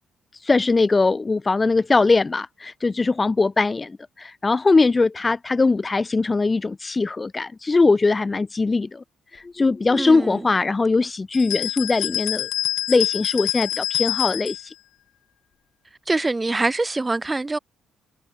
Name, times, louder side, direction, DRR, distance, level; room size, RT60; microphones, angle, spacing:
voice 1, 0.4-9.0 9.3-12.5 12.9-14.7, left 3 dB, 25° left, 2.3 m, -21 dB
voice 2, 10.0-10.5 16.1-17.6, right 2 dB, 20° right, 4.2 m, -24 dB
sound 1, 11.3-14.7, left 14 dB, 85° left, 7.0 m, -26 dB
cardioid pair, 90°, 0 cm